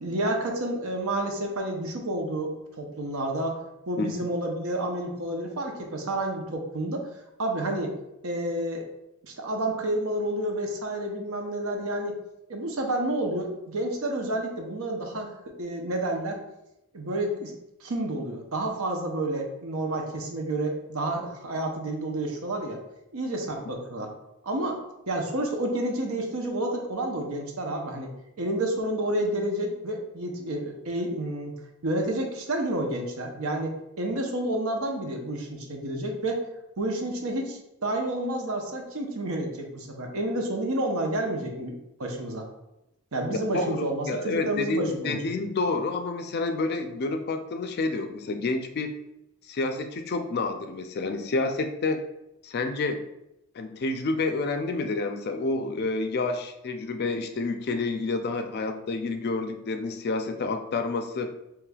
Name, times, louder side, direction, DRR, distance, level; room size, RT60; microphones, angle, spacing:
voice 1, 0.0-3.6 3.9-7.1 7.4-7.9 8.2-8.8 9.2-12.2 12.5-16.4 16.9-17.5 17.8-22.8 23.1-24.1 24.4-24.8 25.1-28.1 28.4-31.5 31.8-36.4 36.8-41.7 42.0-42.5 43.1-45.2, right 1 dB, 85° right, 2 dB, 0.8 m, -30 dB
voice 2, 43.5-48.9 49.5-52.0 52.4-53.0 53.6-61.3, left 3 dB, 50° left, 7 dB, 0.4 m, -29 dB
4.9 x 3.1 x 2.3 m, 0.87 s
head